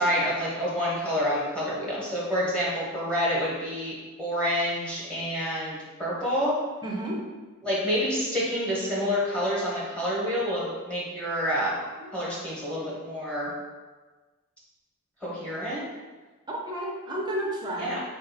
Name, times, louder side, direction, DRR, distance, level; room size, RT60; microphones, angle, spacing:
voice 1, 0.0-6.6 7.6-11.8 12.1-13.5 15.2-15.9 17.8-18.0, equal, 5° left, -7 dB, 1.1 m, -28 dB
voice 2, 6.8-7.3 12.0-12.1 16.5-18.0, right 1 dB, 20° right, -2 dB, 0.7 m, -32 dB
4.8 x 2.6 x 4.0 m, 1.3 s
head